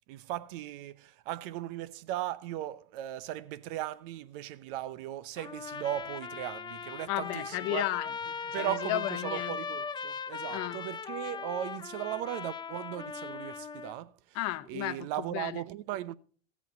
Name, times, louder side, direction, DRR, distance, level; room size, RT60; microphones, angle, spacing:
voice 1, 0.1-7.8 8.5-14.1 14.7-16.2, right 13 dB, 65° right, 0.7 m, -37 dB
Trumpet, 5.4-14.0, left 6 dB, 15° left, 0.4 m, -39 dB
voice 2, 7.1-9.6 10.5-10.8 14.3-15.6, left 16 dB, 60° left, 0.8 m, -34 dB
14.5 x 8.2 x 4.0 m
hypercardioid pair, 95°, 29 cm